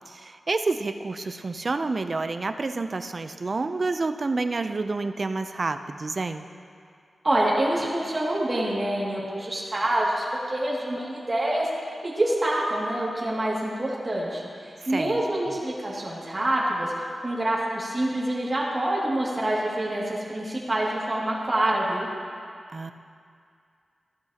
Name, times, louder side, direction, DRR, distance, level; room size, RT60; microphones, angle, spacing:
voice 1, 0.1-6.5 14.8-15.2 22.7-22.9, right 3 dB, 50° right, 9 dB, 0.5 m, -29 dB
voice 2, 7.2-11.7 12.0-22.1, right 1 dB, 30° right, -5 dB, 2.3 m, -26 dB
15.0 x 12.0 x 2.9 m, 2.3 s
wide cardioid pair, 70°, 0 cm